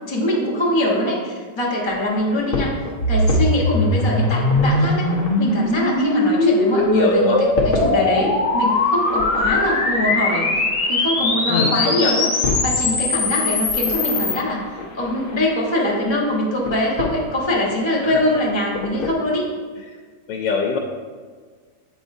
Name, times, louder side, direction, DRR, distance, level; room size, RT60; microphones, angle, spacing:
voice 1, 0.1-2.7 3.1-5.0 5.4-10.5 10.9-12.3 12.6-14.6 14.9-19.5, left 1 dB, 20° left, -3 dB, 0.9 m, -22 dB
sound 1, 1.8-19.1, left 3 dB, 45° left, 0.7 m, -32 dB
sound 2, 3.0-14.4, left 2 dB, 75° left, 1.4 m, -20 dB
voice 2, 6.9-7.4 11.5-12.1 18.0-18.2 20.3-20.8, left 5 dB, 90° left, 0 dB, 1.3 m, -23 dB
7.6 x 4.9 x 2.6 m, 1.5 s
omnidirectional pair, 1.8 m